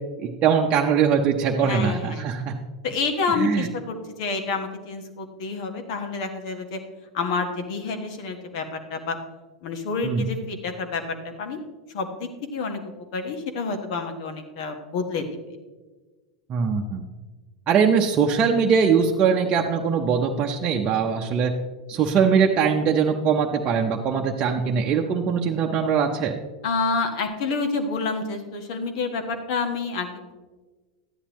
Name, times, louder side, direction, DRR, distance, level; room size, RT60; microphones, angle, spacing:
voice 1, 0.2-2.6 3.4-3.7 10.0-10.2 16.5-17.0 17.7-21.5 21.9-26.3, right 6 dB, 35° right, 1 dB, 0.8 m, -21 dB
voice 2, 1.6-2.3 2.8-6.8 7.1-9.2 9.6-11.6 11.9-15.3 26.6-30.3, left 4 dB, 60° left, 5 dB, 1.4 m, -28 dB
13.0 x 9.9 x 3.1 m, 1.3 s
figure-of-eight pair, 90°, 4 cm